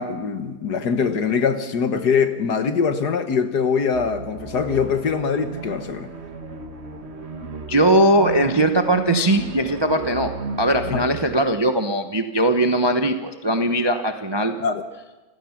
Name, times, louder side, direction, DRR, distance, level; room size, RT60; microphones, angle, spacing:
voice 1, 0.0-6.1 10.9-11.0 14.6-14.8, left 6 dB, 60° left, 1.7 m, -23 dB
sound 1, 3.9-11.6, right 5 dB, 35° right, 1.5 m, -33 dB
voice 2, 7.7-10.3 10.6-14.5, right 1 dB, 20° right, 0.6 m, -20 dB
28.0 x 16.5 x 6.0 m
omnidirectional pair, 2.1 m